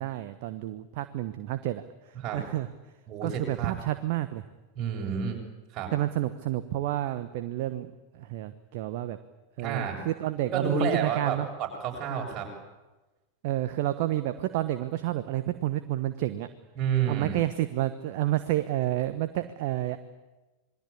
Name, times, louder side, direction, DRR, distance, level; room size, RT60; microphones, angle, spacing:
voice 1, 0.0-2.7 3.2-4.4 5.9-7.9 8.1-9.2 9.6-11.5 13.4-16.5 17.1-20.0, right 14 dB, 50° right, 11 dB, 1.2 m, -30 dB
voice 2, 3.1-3.7 4.8-5.4 5.7-5.9 9.6-10.0 10.5-12.5 16.8-17.4, right 6 dB, 35° right, 1 dB, 7.2 m, -30 dB
27.0 x 21.5 x 8.6 m, 1.1 s
figure-of-eight pair, 90°, 0 cm